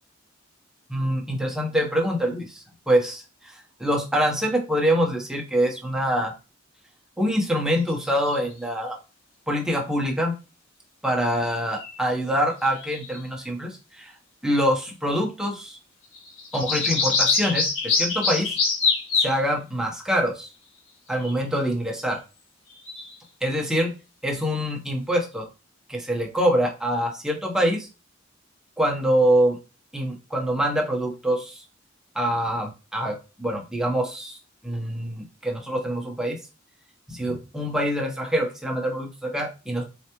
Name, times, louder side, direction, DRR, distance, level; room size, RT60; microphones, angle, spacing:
voice 1, 0.9-6.3 7.2-9.0 9.5-10.3 11.0-14.1 14.4-15.8 16.5-18.6 19.2-20.5 21.1-22.2 23.4-23.9 24.2-25.5 25.9-27.9 28.8-29.6 29.9-31.6 32.1-34.4 34.6-36.4 37.1-39.8, equal, 5° right, 0 dB, 0.9 m, -25 dB
sound 1, 8.0-8.4 11.7-12.0 12.6-13.2 16.1-19.3 21.1-21.4 22.7-23.1, left 4 dB, 85° left, 1.7 m, -24 dB
3.9 x 3.4 x 3.0 m, 0.30 s
head